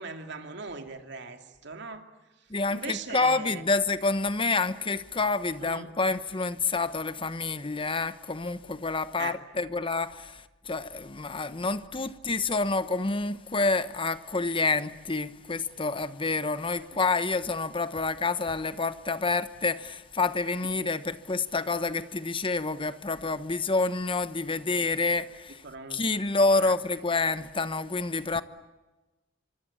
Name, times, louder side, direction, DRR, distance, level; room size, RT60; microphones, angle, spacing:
voice 1, 0.0-2.1 2.7-3.6 5.6-5.9 9.2-9.4 20.8-20.9 25.6-26.1 26.6-26.7, right 4 dB, 60° right, 2.8 m, -40 dB
voice 2, 2.5-25.6 25.9-28.4, left 3 dB, 25° left, 1.1 m, -28 dB
25.5 x 25.0 x 8.8 m
head